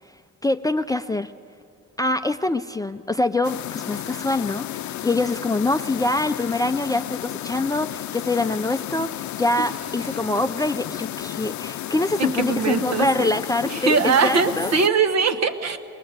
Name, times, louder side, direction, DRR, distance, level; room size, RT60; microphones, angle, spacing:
voice 1, 0.4-1.3 2.0-14.7, left 2 dB, 10° left, 9 dB, 0.4 m, -24 dB
sound 1, 3.4-14.9, left 13 dB, 70° left, 0.6 m, -33 dB
voice 2, 12.2-13.3 13.6-15.8, right 5 dB, 60° right, 8 dB, 1.4 m, -21 dB
21.0 x 19.5 x 8.0 m, 2.5 s
cardioid pair, 90°, 30 cm